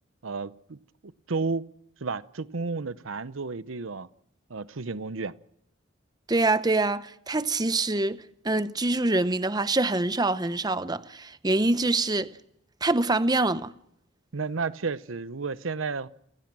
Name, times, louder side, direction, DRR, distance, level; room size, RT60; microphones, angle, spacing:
voice 1, 0.2-1.7 2.0-4.1 4.5-5.3 14.3-16.1, right 4 dB, 80° right, 0.8 m, -32 dB
voice 2, 6.3-12.3 12.8-13.7, right 2 dB, 20° right, 0.8 m, -25 dB
28.5 x 16.5 x 6.1 m
head